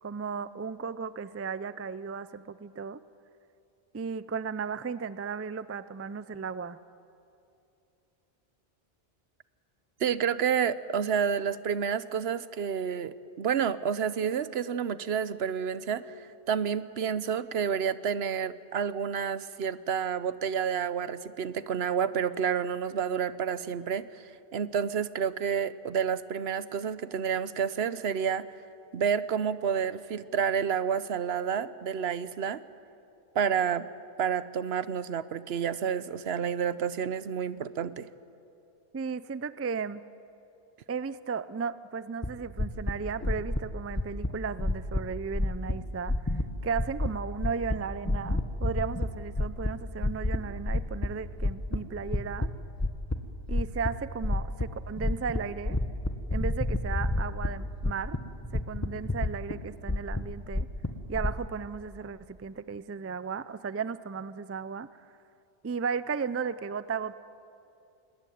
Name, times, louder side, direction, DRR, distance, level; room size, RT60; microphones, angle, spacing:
voice 1, 0.0-3.0 3.9-6.8 38.9-40.0 40.9-52.5 53.5-55.8 56.3-58.2 58.5-60.7 61.1-64.9 65.6-67.2, right 5 dB, 20° right, 15 dB, 0.3 m, -35 dB
voice 2, 10.0-24.2 24.5-28.5 28.9-32.6 33.3-33.9 34.2-38.1, right 7 dB, 80° right, 15 dB, 1.0 m, -29 dB
sound 1, 42.2-42.3 42.6-42.9 43.2-43.6 43.9-44.3 44.6-45.0 45.3-45.7 46.1-46.5 46.7-47.1 47.4-47.8 48.0-49.1 49.4-49.7 50.0-50.4 50.7-51.1 51.4-52.5 52.8-53.2 53.5-53.9 54.2-54.6 55.0-55.4 55.7-57.5 57.8-58.2 58.4-59.5 59.9-61.4, left 2 dB, 15° left, 1.2 m, -28 dB
21.5 x 20.5 x 9.3 m, 2.7 s
omnidirectional pair, 1.0 m